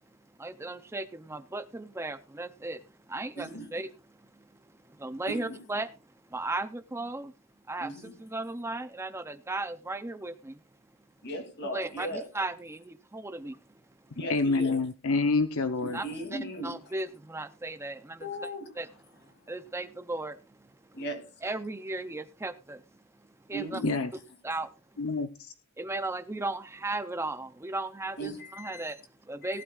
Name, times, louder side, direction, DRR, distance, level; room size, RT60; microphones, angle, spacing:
voice 1, 0.4-3.9 4.3-4.4 5.0-5.9 6.3-7.3 7.7-7.9 8.2-10.6 11.7-13.6 15.9-16.1 16.3-18.2 18.8-18.9 19.5-20.4 21.4-22.8 23.5-23.8 24.4-24.7 25.8-29.6, right 2 dB, 10° right, 0.5 m, -36 dB
voice 2, 3.4-3.7 5.2-5.6 7.8-8.1 11.2-12.3 14.1-14.8 15.8-16.8 18.2-18.7 20.9-21.4 23.5-24.0 28.2-28.8 29.4-29.6, right 1 dB, 50° left, 2.8 m, -37 dB
voice 3, 14.3-16.0 23.8-24.1 25.0-25.3, left 3 dB, 70° left, 0.8 m, -27 dB
18.0 x 12.0 x 2.4 m
head